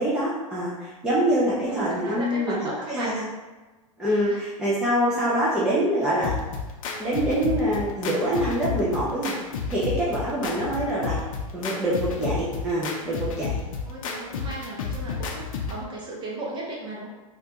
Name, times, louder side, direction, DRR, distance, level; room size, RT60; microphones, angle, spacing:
voice 1, 0.0-3.3 4.0-6.4 7.0-9.4 9.7-11.2 11.5-13.6, right 1 dB, 5° right, -9 dB, 0.7 m, -25 dB
voice 2, 1.7-3.2 4.3-4.5 10.4-10.7 13.9-17.1, right 2 dB, 25° right, -4 dB, 0.9 m, -36 dB
sound 1, 6.2-15.8, left 5 dB, 65° left, 0.6 m, -31 dB
3.2 x 2.5 x 3.0 m, 1.2 s
hypercardioid pair, 115°, 18 cm